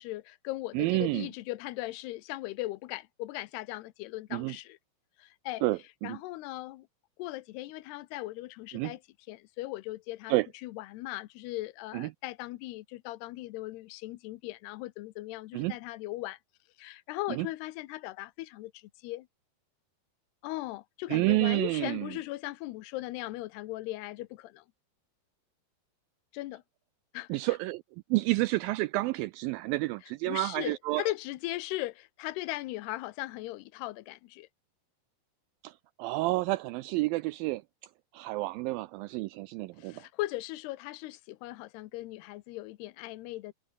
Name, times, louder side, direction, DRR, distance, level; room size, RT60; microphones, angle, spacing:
voice 1, 0.0-4.8 5.2-5.6 6.0-6.9 7.2-9.0 9.3-10.3 10.6-16.4 16.8-19.3 20.4-24.6 26.3-26.6 27.1-27.3 30.3-34.5 39.8-43.5, left 18 dB, 85° left, 2.9 m, -38 dB
voice 2, 0.7-1.3 4.3-4.6 5.6-6.2 8.7-8.9 10.3-10.5 11.9-12.1 15.5-15.7 17.3-17.5 21.1-22.1 27.3-27.8 28.1-31.0 35.6-35.7 36.0-37.6 38.1-40.0, right 20 dB, 85° right, 2.0 m, -29 dB
omnidirectional pair, 4.6 m